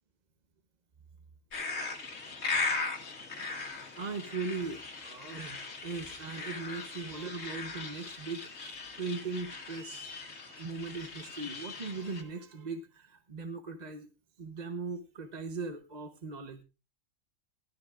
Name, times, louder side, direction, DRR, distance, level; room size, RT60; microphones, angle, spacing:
sound 1, 1.5-12.2, left 3 dB, 70° left, 2.1 m, -39 dB
voice 1, 3.7-10.1 10.4-14.1 14.4-16.6, right 4 dB, 35° right, 6 dB, 1.0 m, -39 dB
17.0 x 12.5 x 2.5 m, 0.29 s
omnidirectional pair, 1.4 m